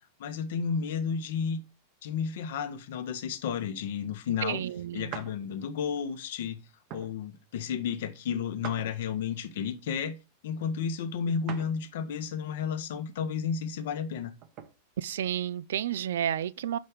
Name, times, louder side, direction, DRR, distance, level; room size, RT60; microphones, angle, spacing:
voice 1, 0.2-1.6 2.0-4.6 4.9-6.6 6.9-10.2 10.4-14.3, left 7 dB, 55° left, 1.0 m, -32 dB
voice 2, 4.4-5.2 15.0-16.8, right 10 dB, 60° right, 0.4 m, -31 dB
sound 1, 5.1-5.4 6.0-6.2 6.9-7.2 8.6-9.4 11.5-11.8 12.3-12.4 14.0-14.7, right 8 dB, 40° right, 0.9 m, -42 dB
5.5 x 5.2 x 6.4 m
figure-of-eight pair, 90°, 0 cm